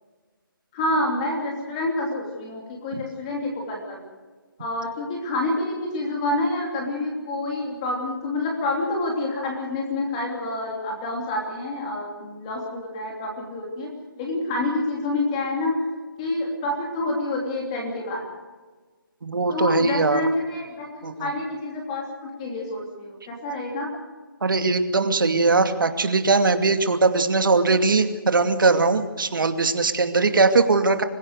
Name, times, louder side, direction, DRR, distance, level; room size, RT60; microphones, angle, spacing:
voice 1, 0.7-4.0 4.6-13.9 14.2-15.8 16.2-18.2 19.5-23.9, left 2 dB, 15° left, 0 dB, 3.0 m, -27 dB
voice 2, 19.2-20.2 21.0-21.3 24.4-31.0, right 3 dB, 65° right, 7 dB, 2.5 m, -20 dB
26.0 x 16.0 x 6.6 m, 1.3 s
hypercardioid pair, 170°, 12 cm